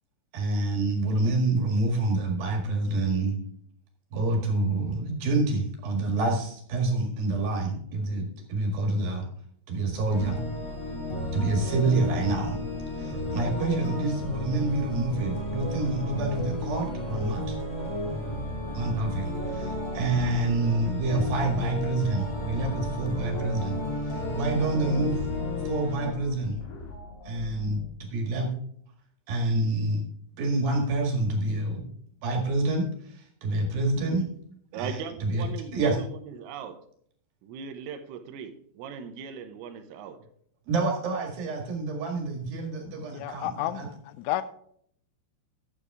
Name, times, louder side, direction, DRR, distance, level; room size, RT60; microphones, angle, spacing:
voice 1, 0.3-3.4 4.1-9.2 9.7-10.4 11.3-12.6 13.0-17.6 18.7-25.2 25.6-26.6 27.2-28.5 29.3-30.1 30.4-31.9 32.2-34.2 34.7-35.4 35.7-36.0 40.7-43.9, right 2 dB, 55° right, 2 dB, 3.1 m, -27 dB
sound 1, 10.1-26.1, left 1 dB, 35° left, 4.6 m, -33 dB
sound 2, 12.0-27.9, left 3 dB, 60° left, 3.9 m, -44 dB
voice 2, 34.7-36.8 37.4-40.2, right 7 dB, 90° right, 8 dB, 3.6 m, -39 dB
voice 3, 43.1-44.4, left 13 dB, 85° left, 14 dB, 3.0 m, -31 dB
12.5 x 8.3 x 3.6 m, 0.64 s
omnidirectional pair, 5.7 m